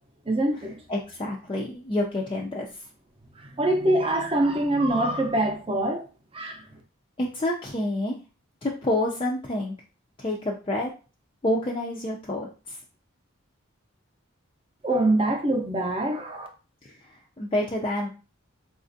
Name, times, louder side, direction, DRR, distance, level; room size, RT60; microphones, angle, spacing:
voice 1, 0.3-0.8 3.4-6.0 6.3-6.6 14.8-16.5, right 1 dB, 25° right, 0.6 m, -24 dB
voice 2, 0.9-2.9 7.2-8.2 8.6-9.8 10.2-10.9 11.4-12.8 16.8-18.1, left 1 dB, 25° left, 0.4 m, -28 dB
4.1 x 2.4 x 2.6 m
head